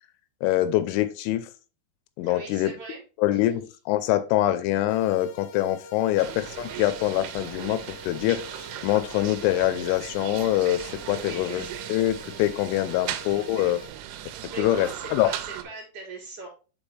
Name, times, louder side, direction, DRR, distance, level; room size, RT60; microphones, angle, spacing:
voice 1, 0.4-1.5 2.2-2.7 3.2-6.3 6.6-8.4 8.8-13.8 14.6-15.3, left 14 dB, 85° left, 12 dB, 2.9 m, -24 dB
voice 2, 2.2-3.0 3.3-3.4 6.0-6.1 11.1-11.8 12.8-13.0 14.4-16.5, right 3 dB, 25° right, -2 dB, 3.1 m, -40 dB
sound 1, 4.9-13.9, left 3 dB, 70° left, 2.2 m, -46 dB
sound 2, 6.2-15.6, right 12 dB, 90° right, 3.1 m, -38 dB
7.1 x 4.6 x 3.2 m, 0.34 s
omnidirectional pair, 5.4 m